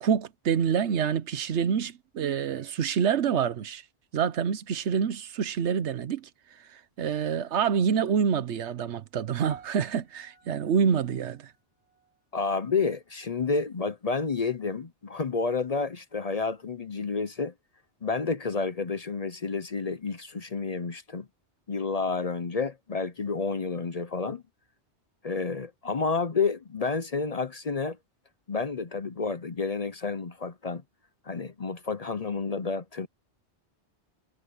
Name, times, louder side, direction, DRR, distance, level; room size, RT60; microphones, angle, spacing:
voice 1, 0.0-3.8 4.1-6.3 6.7-11.5, right 7 dB, 80° right, 1.1 m, -27 dB
sound 1, 9.5-13.9 14.1-14.5 15.2-15.3, right 5 dB, 15° left, 4.2 m, -55 dB
voice 2, 12.3-17.5 18.0-21.3 21.7-24.4 25.2-28.0 28.5-30.8 31.2-33.1, left 4 dB, 40° left, 0.7 m, -30 dB
omnidirectional pair, 1.1 m